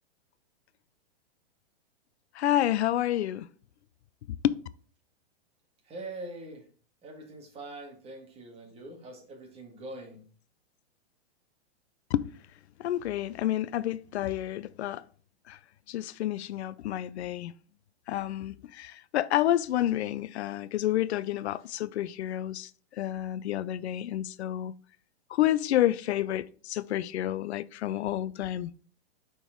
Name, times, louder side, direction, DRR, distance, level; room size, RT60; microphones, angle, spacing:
voice 1, 2.4-3.5 4.3-4.5 12.1-12.3 12.8-15.0 15.5-15.6 15.9-17.5 18.1-22.7 23.0-24.7 25.3-28.7, left 13 dB, 90° left, 0.5 m, -29 dB
voice 2, 5.9-6.6 7.0-10.2, right 2 dB, 20° right, 1.7 m, -43 dB
5.3 x 4.4 x 4.5 m
hypercardioid pair, 150°, 32 cm